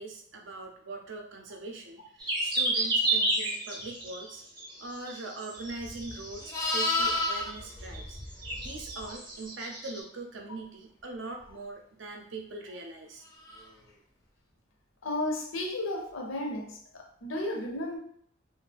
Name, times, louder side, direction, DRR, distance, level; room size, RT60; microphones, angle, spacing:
voice 1, 0.0-4.4 4.8-8.2 8.6-13.2, right 3 dB, 70° right, 0.5 m, -41 dB
sound 1, 2.2-7.2 7.5-7.6 7.9-8.2 8.4-10.0, right 2 dB, 25° right, 0.6 m, -32 dB
Livestock farm animals working animals, 5.8-9.1 13.4-13.7, left 2 dB, 15° left, 0.3 m, -32 dB
voice 2, 15.0-18.0, left 1 dB, 85° left, 0.6 m, -33 dB
2.5 x 2.0 x 3.3 m
head